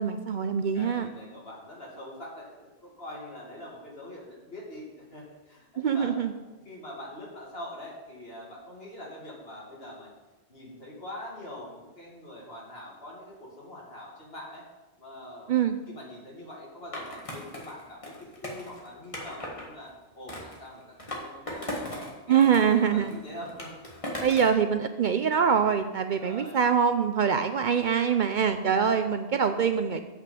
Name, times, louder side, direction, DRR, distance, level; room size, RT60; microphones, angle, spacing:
voice 1, 0.0-1.1 5.8-6.3 15.5-15.8 22.3-23.1 24.2-30.0, right 7 dB, 60° right, 8 dB, 0.6 m, -24 dB
voice 2, 0.7-6.1 6.5-10.1 10.5-14.6 15.0-23.7 26.0-26.8, left 1 dB, 65° left, -4 dB, 2.8 m, -44 dB
Skateboard, 16.9-19.7 20.3-22.1 22.4-24.6, left 1 dB, 30° left, 1.7 m, -38 dB
7.8 x 5.9 x 6.8 m, 1.1 s
omnidirectional pair, 1.1 m